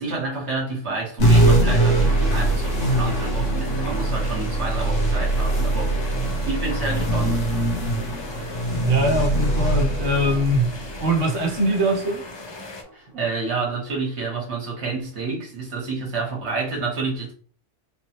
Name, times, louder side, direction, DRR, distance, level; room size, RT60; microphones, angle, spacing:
voice 1, 0.0-7.4 12.9-17.3, right 3 dB, 65° right, 1.6 m, -29 dB
sound 1, 1.2-12.0, right 1 dB, 85° left, 1.5 m, -22 dB
sound 2, 1.3-12.8, left 2 dB, 30° left, 0.5 m, -38 dB
voice 2, 8.8-10.7 11.0-12.2, right 1 dB, 90° right, 1.2 m, -22 dB
3.9 x 3.0 x 2.9 m
omnidirectional pair, 1.3 m